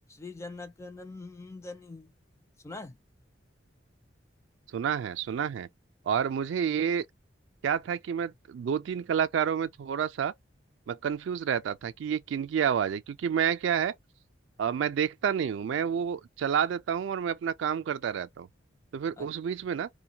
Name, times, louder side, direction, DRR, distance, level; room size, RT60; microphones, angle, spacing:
voice 1, 0.1-2.1 2.6-3.0 19.2-19.3, left 3 dB, 15° left, 0.3 m, -43 dB
voice 2, 4.7-5.7 6.0-7.0 7.6-10.3 10.9-13.9 14.6-18.5 18.9-19.9, right 8 dB, 70° right, 0.3 m, -29 dB
2.4 x 2.2 x 2.7 m
head